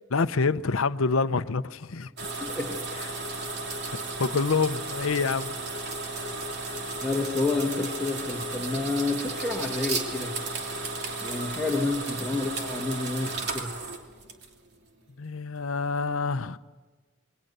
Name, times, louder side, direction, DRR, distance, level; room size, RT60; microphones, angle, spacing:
voice 1, 0.1-2.1 4.2-5.6 15.2-16.6, left 4 dB, 75° left, 0.7 m, -26 dB
sound 1, 2.2-14.7, right 3 dB, 55° right, 2.9 m, -34 dB
voice 2, 2.4-2.8 7.0-10.3 11.2-13.7, left 3 dB, 5° left, 1.7 m, -29 dB
28.0 x 22.5 x 6.8 m
head